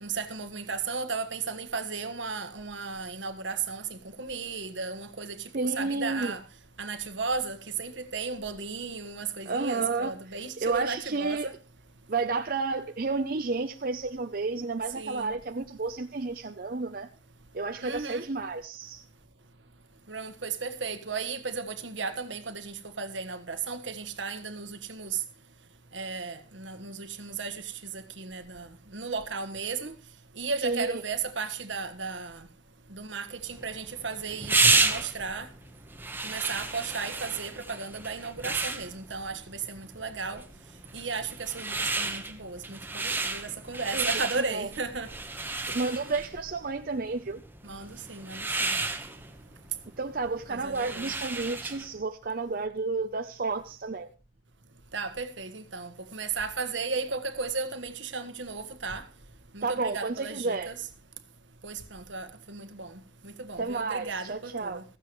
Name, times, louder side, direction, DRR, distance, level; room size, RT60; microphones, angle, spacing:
voice 1, 0.0-6.4 6.8-11.5 14.9-15.3 17.8-18.2 20.1-25.2 25.9-28.7 28.9-29.9 30.4-32.4 32.9-35.5 36.2-40.4 40.9-45.1 47.6-48.7 50.5-51.1 54.9-59.0 59.5-60.8 61.6-62.9 63.2-64.8, right 4 dB, 75° right, 1.6 m, -35 dB
voice 2, 5.5-6.3 9.5-10.1 10.6-11.5 12.1-17.1 17.5-19.0 30.6-31.0 43.9-44.7 45.7-47.4 50.0-54.1 59.6-60.7 63.6-64.8, right 3 dB, 50° right, 0.7 m, -31 dB
sound 1, 33.4-52.0, right 3 dB, 10° right, 1.2 m, -32 dB
16.0 x 14.5 x 3.2 m
head